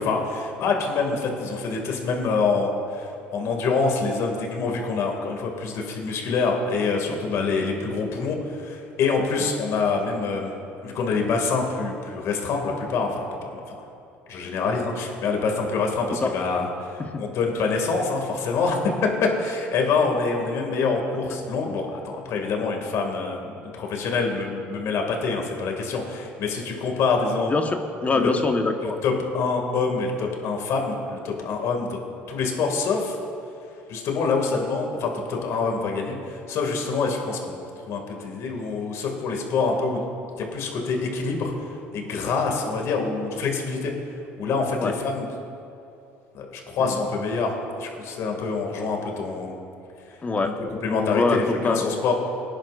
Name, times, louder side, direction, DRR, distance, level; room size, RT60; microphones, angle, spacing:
voice 1, 0.0-13.9 14.3-18.8 19.2-27.5 28.1-28.3 29.0-32.0 32.3-33.2 33.9-40.0 40.4-41.5 41.9-43.9 44.4-45.3 46.3-49.6 50.4-50.5 50.8-52.1, left 4 dB, 60° left, 2 dB, 2.3 m, -26 dB
voice 2, 27.5-29.0 44.8-44.9 46.8-47.0 50.2-51.9, left 3 dB, 25° left, 4 dB, 1.3 m, -25 dB
20.0 x 10.5 x 2.6 m, 2.9 s
supercardioid pair, 80°, 6 cm